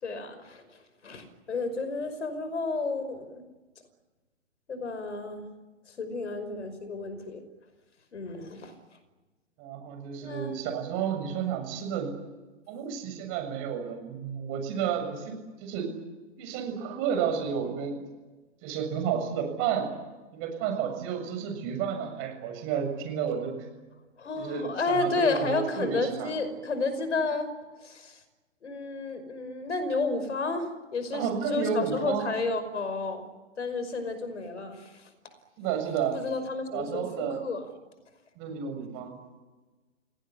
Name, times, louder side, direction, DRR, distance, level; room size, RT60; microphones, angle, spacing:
voice 1, 0.0-3.4 4.7-5.5 5.9-7.4 8.1-8.7 10.2-10.6 24.2-27.5 27.8-28.2 28.6-33.2 33.6-35.1 36.1-37.7, left 3 dB, 70° left, 10 dB, 5.6 m, -31 dB
voice 2, 9.6-12.1 12.7-15.9 16.4-18.0 18.6-19.9 20.3-23.5 24.4-24.7 25.0-26.4 31.1-32.3 35.6-36.2 36.7-37.4 38.4-39.1, right 7 dB, 35° right, 5 dB, 7.3 m, -31 dB
30.0 x 18.0 x 9.9 m, 1.2 s
figure-of-eight pair, 120°, 37 cm